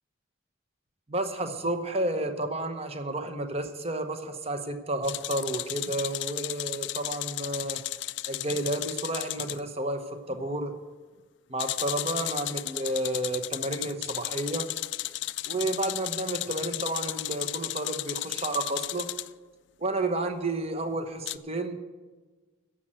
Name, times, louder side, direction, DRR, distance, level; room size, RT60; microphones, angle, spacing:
voice 1, 1.1-7.8 8.3-10.7 11.5-14.7 15.5-19.1 19.8-21.7, right 2 dB, 30° right, 7 dB, 0.9 m, -31 dB
sound 1, 5.0-9.6 11.6-19.3 21.3-21.4, left 16 dB, 60° left, 0.3 m, -34 dB
10.5 x 7.4 x 8.9 m, 1.3 s
head